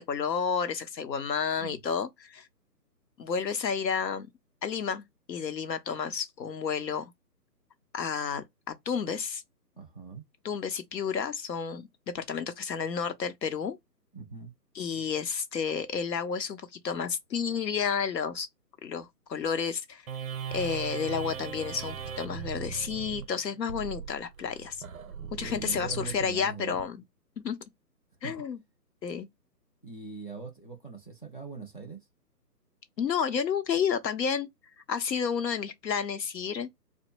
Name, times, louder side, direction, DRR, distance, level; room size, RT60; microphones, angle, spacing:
voice 1, 0.0-2.5 3.2-4.3 4.6-7.1 7.9-9.4 10.4-11.9 12.1-13.8 14.7-18.5 18.8-20.0 20.5-24.8 25.4-27.0 27.4-27.6 28.2-28.6 29.0-29.3 33.0-34.5 34.9-36.7, left 6 dB, 85° left, 0.9 m, -31 dB
voice 2, 9.8-10.2 14.1-14.5 25.2-26.8 28.2-28.3 29.8-32.1, right 4 dB, 35° left, 0.4 m, -41 dB
sound 1, 20.1-26.8, right 7 dB, 60° right, 0.6 m, -39 dB
3.0 x 2.1 x 3.1 m
hypercardioid pair, 170°, 49 cm